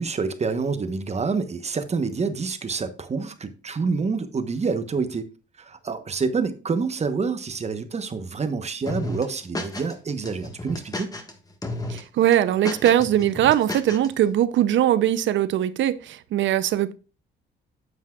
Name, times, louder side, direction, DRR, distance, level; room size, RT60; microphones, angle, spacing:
voice 1, 0.0-5.3 5.6-11.1, right 4 dB, 35° right, 1.1 m, -27 dB
sound 1, 8.9-9.9 10.2-11.3 11.6-12.0 12.3-14.1, left 1 dB, 20° left, 1.5 m, -32 dB
voice 2, 11.9-16.9, right 11 dB, 70° right, 0.6 m, -21 dB
9.6 x 7.3 x 2.4 m
cardioid pair, 90°, 20 cm